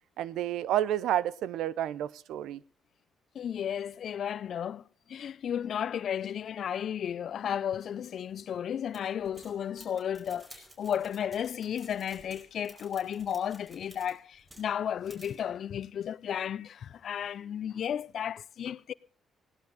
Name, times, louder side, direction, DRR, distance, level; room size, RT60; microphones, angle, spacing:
voice 1, 0.2-2.6, right 12 dB, 85° right, 0.7 m, -30 dB
voice 2, 3.3-18.9, left 9 dB, 60° left, 0.6 m, -34 dB
sound 1, 8.9-14.7 15.1-15.4, right 1 dB, 15° right, 4.8 m, -54 dB
17.0 x 11.5 x 5.2 m
cardioid pair, 90°, 0 cm